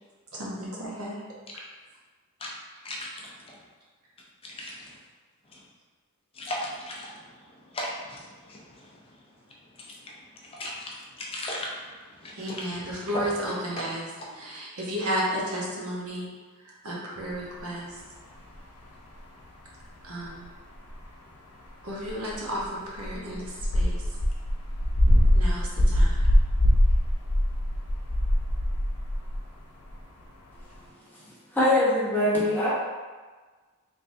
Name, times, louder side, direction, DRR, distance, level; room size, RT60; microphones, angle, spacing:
voice 1, 0.3-1.2 12.3-16.3 16.7-17.9 20.0-20.5 21.8-24.0 25.3-26.2, equal, 70° right, -4 dB, 0.9 m, -33 dB
voice 2, 2.8-3.6 4.4-4.9 5.5-5.6 6.3-9.0 9.8-10.1 10.4-11.8 12.0-13.2, left 1 dB, 25° left, -3 dB, 0.5 m, -37 dB
sound 1, 17.3-17.4 20.9-21.0 22.1-22.6 22.9-29.5 29.9-30.0 30.6-30.7, left 1 dB, 90° left, 0.7 m, -22 dB
voice 3, 31.5-32.7, left 1 dB, 10° left, -9 dB, 0.9 m, -22 dB
3.4 x 3.2 x 2.6 m, 1.4 s
head